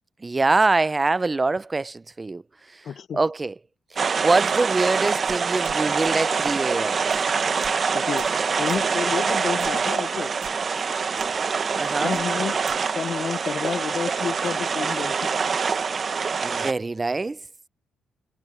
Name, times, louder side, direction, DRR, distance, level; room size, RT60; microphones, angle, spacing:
voice 1, 0.2-2.4 2.7-2.8 3.1-3.5 3.9-7.0 11.8-12.2 16.4-17.4, right 3 dB, 20° right, 0.4 m, -24 dB
voice 2, 2.8-3.2 7.3-7.6 7.9-8.3 8.6-10.3 11.4-12.5 12.9-15.3, left 7 dB, 55° left, 0.6 m, -31 dB
sound 1, 4.0-16.7, right 5 dB, 40° right, 0.9 m, -25 dB
sound 2, 5.2-6.1 6.4-6.6 7.1-7.2 7.6-7.8 8.2-8.4 8.7-8.9 9.6-9.9 10.4-10.8 11.1-11.3 12.1-12.8, right 12 dB, 85° right, 1.2 m, -45 dB
cardioid pair, 90°, 0 cm